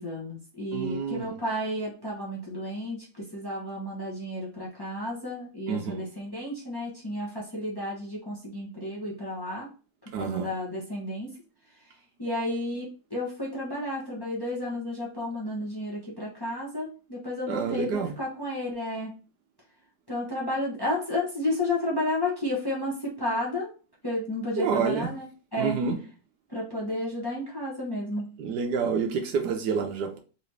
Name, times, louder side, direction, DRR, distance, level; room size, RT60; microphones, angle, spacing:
voice 1, 0.0-9.7 10.2-11.3 12.2-19.1 20.1-23.7 24.0-25.8 26.5-28.3, left 1 dB, 15° left, 0.9 m, -32 dB
voice 2, 0.7-1.3 5.7-6.1 10.1-10.5 17.5-18.2 24.6-25.1 25.6-26.0 28.4-30.2, right 5 dB, 85° right, 1.4 m, -28 dB
4.0 x 3.1 x 3.2 m
omnidirectional pair, 1.7 m